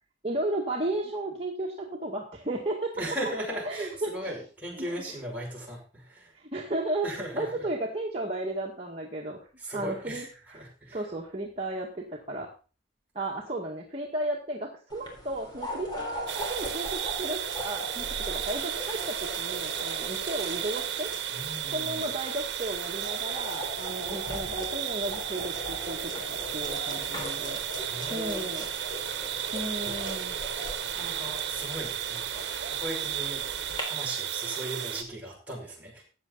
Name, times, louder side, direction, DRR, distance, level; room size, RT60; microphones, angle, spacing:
voice 1, 0.2-2.9 3.6-4.4 4.8-5.0 6.3-9.4 9.7-12.5 13.2-21.1 21.7-27.6 28.1-28.7 29.5-30.4, right 1 dB, 30° right, -2 dB, 1.8 m, -34 dB
voice 2, 3.0-6.3 7.0-7.6 9.6-11.0 21.3-22.1 27.9-28.6 30.5-36.0, right 1 dB, 10° right, -4 dB, 5.6 m, -38 dB
sound 1, 14.9-33.8, equal, 25° left, 3.7 m, -40 dB
sound 2, 16.3-35.0, right 10 dB, 65° right, 1.2 m, -34 dB
14.0 x 8.9 x 4.0 m, 0.35 s
head